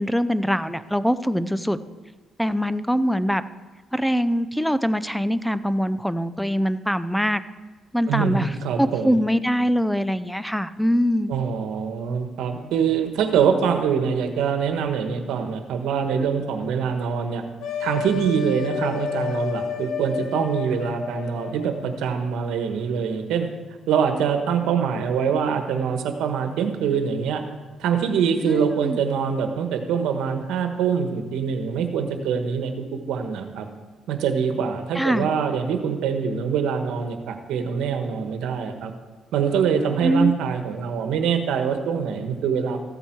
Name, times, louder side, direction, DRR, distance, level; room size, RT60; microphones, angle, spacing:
voice 1, 0.0-1.8 2.4-3.4 3.9-7.4 7.9-8.5 8.8-11.3 28.4-29.0 34.9-35.3 40.0-40.3, equal, ahead, 14 dB, 0.6 m, -23 dB
voice 2, 8.1-9.2 11.3-17.4 17.8-23.5 23.9-27.4 27.8-33.7 34.1-38.9 39.3-42.8, right 7 dB, 85° right, 6 dB, 1.3 m, -24 dB
sound 1, 17.6-22.0, left 6 dB, 85° left, 1.3 m, -31 dB
14.5 x 8.1 x 4.7 m, 1.3 s
cardioid pair, 90°, 0 cm